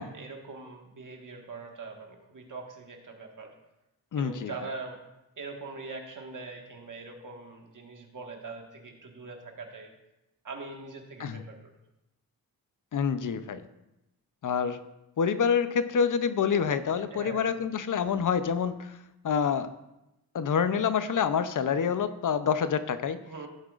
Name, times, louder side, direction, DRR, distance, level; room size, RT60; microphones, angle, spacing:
voice 1, 0.0-3.5 4.2-5.0 5.4-9.9 10.4-11.6 17.1-17.5 23.3-23.5, right 3 dB, 55° right, 2 dB, 1.6 m, -42 dB
voice 2, 4.1-4.5 11.2-11.4 12.9-13.7 14.4-14.8 15.2-18.9 19.2-19.7 20.3-23.2, left 7 dB, 55° left, 12 dB, 0.7 m, -27 dB
15.5 x 7.5 x 2.5 m, 0.92 s
cardioid pair, 90°, 37 cm